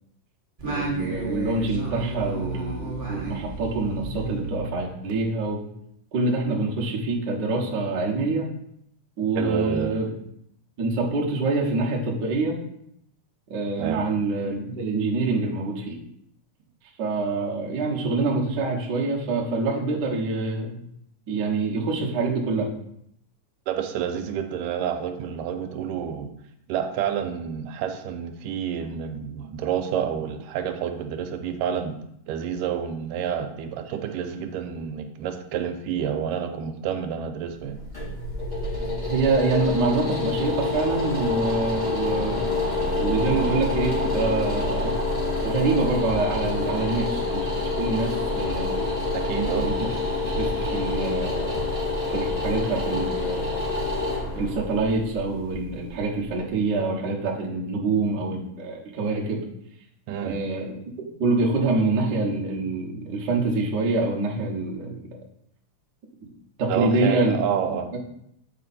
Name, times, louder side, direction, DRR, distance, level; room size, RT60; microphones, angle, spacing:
Singing, 0.6-5.4, right 3 dB, 30° right, 0.8 m, -32 dB
voice 1, 0.6-5.6 6.1-8.5 9.2-10.1 10.8-12.6 13.5-16.0 17.0-20.8 21.3-22.7 39.1-42.6 43.0-45.0 45.4-47.4 47.8-48.8 49.4-49.9 50.3-51.6 52.1-53.6 54.3-59.4 60.2-60.9 61.2-65.2 66.6-67.4 67.7-68.0, right 3 dB, 55° right, -2 dB, 1.2 m, -26 dB
voice 2, 9.4-9.9 13.8-14.0 23.7-26.3 26.7-32.0 32.3-37.8 49.1-49.7 60.1-60.4 66.7-67.9, right 8 dB, 85° right, 6 dB, 2.2 m, -29 dB
sound 1, 37.5-56.5, left 3 dB, 15° left, 2.1 m, -27 dB
7.7 x 5.0 x 4.2 m, 0.73 s
omnidirectional pair, 3.9 m